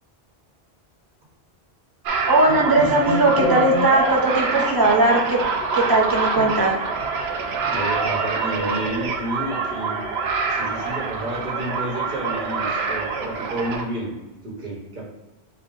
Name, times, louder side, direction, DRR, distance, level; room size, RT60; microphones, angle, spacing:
sound 1, 2.1-13.8, right 4 dB, 80° right, 0.9 m, -25 dB
voice 1, 2.3-5.4 5.7-6.7, right 2 dB, 25° right, -2 dB, 0.6 m, -18 dB
voice 2, 7.6-10.0 10.5-14.2 14.4-15.1, right 1 dB, 50° right, -4 dB, 1.4 m, -30 dB
5.8 x 2.2 x 3.8 m, 1.1 s
omnidirectional pair, 1.1 m